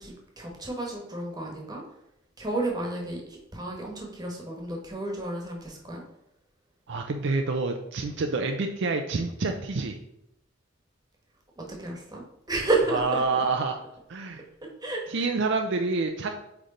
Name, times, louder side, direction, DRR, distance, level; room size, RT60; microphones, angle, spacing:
voice 1, 0.0-1.8 2.4-6.0 11.6-13.2 14.8-15.3, right 2 dB, 20° right, -1 dB, 1.3 m, -31 dB
voice 2, 6.9-10.0 12.9-13.8 14.1-14.4 15.1-16.3, right 3 dB, 60° right, 4 dB, 0.5 m, -27 dB
8.1 x 3.3 x 3.8 m, 0.83 s
head